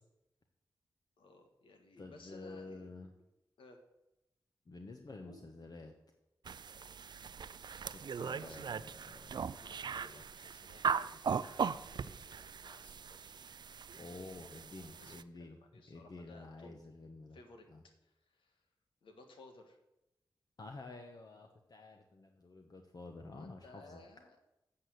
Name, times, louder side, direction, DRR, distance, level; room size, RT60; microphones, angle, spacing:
voice 1, 1.2-3.2 3.6-3.8 5.2-5.5 6.7-7.0 8.2-9.1 9.5-13.4 14.1-14.7 14.9-16.8 17.3-17.7 18.0-18.6 19.0-19.8 23.3-24.4, left 2 dB, 85° left, 5 dB, 1.5 m, -59 dB
voice 2, 2.0-3.1 4.7-5.9 7.9-9.5 10.0-10.2 12.0-12.1 14.0-17.4 17.7-17.8 20.6-24.0, left 3 dB, 50° left, 3 dB, 1.1 m, -50 dB
sound 1, 6.5-15.2, right 6 dB, 60° right, 0.4 m, -39 dB
7.7 x 6.7 x 7.9 m, 0.91 s
cardioid pair, 45°, 8 cm